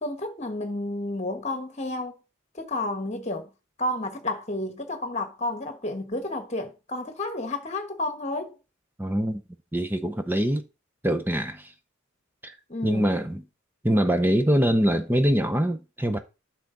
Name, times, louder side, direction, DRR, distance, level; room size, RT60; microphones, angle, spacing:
voice 1, 0.0-2.2 2.5-3.5 3.8-8.6 12.7-13.2, left 2 dB, 30° left, 1.4 m, -31 dB
voice 2, 9.0-9.4 9.7-10.6 11.0-11.7 12.4-12.5 12.8-13.4 13.8-16.2, equal, 10° right, 0.7 m, -23 dB
8.2 x 6.0 x 3.9 m
head